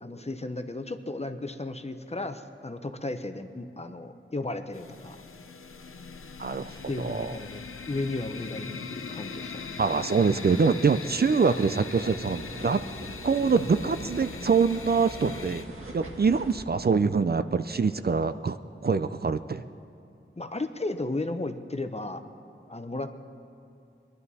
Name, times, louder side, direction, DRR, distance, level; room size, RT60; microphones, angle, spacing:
voice 1, 0.0-5.2 6.9-7.6 7.9-9.6 20.4-22.2 22.7-23.1, left 2 dB, 30° left, 8 dB, 0.8 m, -34 dB
sound 1, 4.7-15.6, left 5 dB, 85° left, 0.7 m, -40 dB
voice 2, 6.4-6.7 7.0-7.3 9.8-12.8 13.2-15.6 15.9-18.6 18.8-19.6, right 5 dB, 50° right, 11 dB, 0.4 m, -24 dB
sound 2, 11.1-16.6, right 1 dB, 75° right, 1.6 m, -43 dB
22.5 x 11.0 x 4.2 m, 2.5 s
wide cardioid pair, 55°, 21 cm